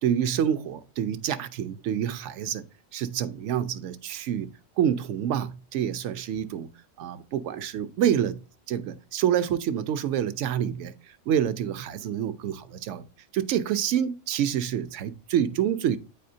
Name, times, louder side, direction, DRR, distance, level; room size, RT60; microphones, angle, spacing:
voice 1, 0.0-2.6 2.9-6.7 7.0-8.4 8.7-10.9 11.3-13.0 13.3-16.0, right 9 dB, 70° right, 0.9 m, -27 dB
9.2 x 4.2 x 2.6 m
omnidirectional pair, 1.3 m